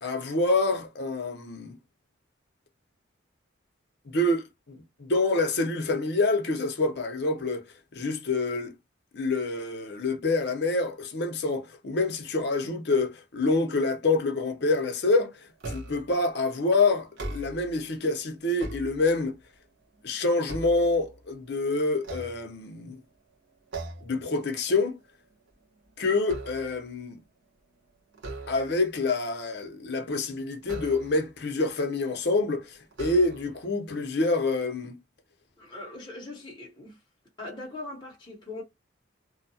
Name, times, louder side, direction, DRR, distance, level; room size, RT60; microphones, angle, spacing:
voice 1, 0.0-1.8 4.1-7.6 7.9-8.7 9.1-15.3 15.7-19.4 20.0-23.0 24.0-25.0 26.0-27.2 28.5-35.0, left 3 dB, 55° left, 0.6 m, -27 dB
sound 1, 15.6-16.2 17.0-17.8 18.3-19.4 19.9-21.4 22.0-23.0 23.7-24.2 24.6-24.8 25.2-26.9 28.1-29.0 30.6-31.4 32.2-32.3 32.9-33.7, right 2 dB, 70° right, 0.9 m, -40 dB
voice 2, 35.6-37.0 37.4-38.6, left 2 dB, 20° left, 0.7 m, -40 dB
2.7 x 2.2 x 2.6 m
head